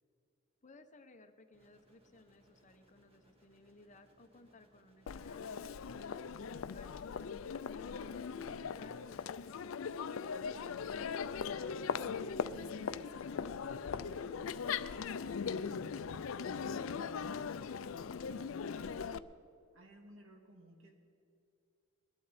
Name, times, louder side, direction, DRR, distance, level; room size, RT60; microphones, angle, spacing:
voice 1, 0.6-6.9 7.5-10.6, left 3 dB, 35° left, 8 dB, 0.9 m, -60 dB
sound 1, 1.5-5.9, equal, 30° right, 2.0 m, -69 dB
Crowd, 5.1-19.2, left 6 dB, 75° left, 0.4 m, -39 dB
voice 2, 11.2-16.1 16.4-19.0 19.7-20.9, right 1 dB, 65° right, 2 dB, 2.0 m, -59 dB
21.5 x 12.0 x 4.2 m, 2.7 s
head